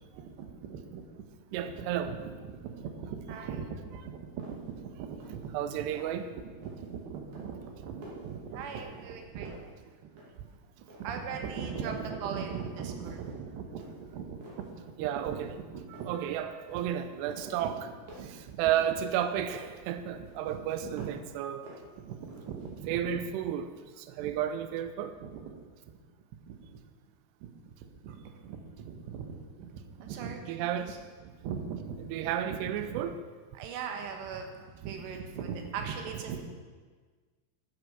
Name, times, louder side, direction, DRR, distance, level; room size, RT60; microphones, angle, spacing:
voice 1, 0.2-1.0 1.6-1.7 2.1-2.2 2.4-5.9 6.3-9.6 10.0-10.1 11.0-15.4 15.7-16.2 16.7-16.8 17.3-17.8 18.2-18.7 20.1-21.1 22.0-23.2 24.2-24.3 25.2-25.5 26.5-26.8 27.4-27.5 28.0-31.0 31.2-33.1 33.5-36.4, right 6 dB, 70° right, 4 dB, 3.2 m, -40 dB
voice 2, 1.5-2.1 5.5-6.3 11.8-11.9 15.0-15.6 15.9-17.8 18.2-21.6 22.9-25.2 30.5-30.9 32.1-33.1, right 10 dB, 90° right, 10 dB, 2.4 m, -32 dB
sound 1, 3.9-4.0 4.4-4.8 5.1-5.5 5.8-6.3 6.6-7.0 7.3-9.2 9.5-10.5 10.8-12.0 12.4-12.6 13.0-13.5 13.8-14.7 15.2-15.6 15.9-17.0 17.3-19.8 20.3-21.3 21.6-22.7, equal, 45° right, 3.1 m, -53 dB
9.9 x 9.7 x 6.8 m, 1.5 s
omnidirectional pair, 5.5 m